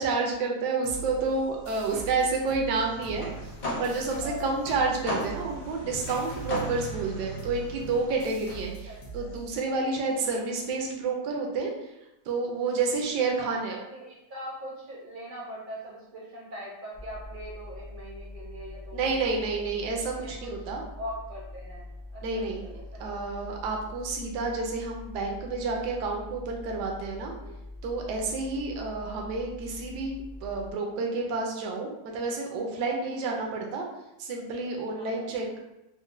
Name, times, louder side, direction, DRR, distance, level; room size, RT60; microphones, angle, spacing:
voice 1, 0.0-3.3 3.8-11.7 12.3-13.8 18.9-20.8 22.2-27.3 27.8-30.1 30.4-33.9 34.2-35.6, right 3 dB, 75° right, 0 dB, 1.2 m, -30 dB
sound 1, 0.8-10.1, right 5 dB, 70° left, 1.2 m, -43 dB
sound 2, 2.7-8.2, left 1 dB, 40° left, 0.7 m, -37 dB
voice 2, 4.1-4.8 8.8-9.3 13.3-19.6 20.2-20.5 21.0-23.5 27.4-27.6 28.1-28.7 34.9-35.4, equal, 50° right, -4 dB, 0.6 m, -42 dB
sound 3, 16.9-30.7, left 2 dB, 5° right, 0.3 m, -43 dB
4.1 x 2.1 x 2.5 m, 0.91 s
omnidirectional pair, 1.9 m